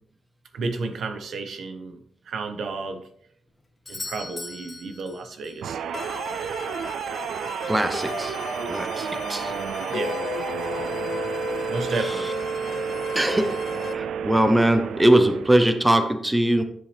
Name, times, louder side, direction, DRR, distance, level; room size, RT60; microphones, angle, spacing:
voice 1, 0.5-3.1 3.9-5.8 9.9-10.2 10.8-11.0 11.7-12.3, right 3 dB, 65° right, 8 dB, 1.0 m, -32 dB
Doorbell, 3.9-5.7 9.8-9.9, left 2 dB, 20° left, 1.5 m, -39 dB
sound 1, 5.6-16.0, right 7 dB, 85° right, 0.4 m, -31 dB
sound 2, 5.9-13.9, left 7 dB, 50° left, 0.5 m, -35 dB
voice 2, 7.6-8.4 8.6-9.5 12.0-12.1 13.1-13.6 13.9-16.6, right 1 dB, 10° right, 8 dB, 0.7 m, -21 dB
10.5 x 7.1 x 3.4 m, 0.68 s
wide cardioid pair, 140°, 0 cm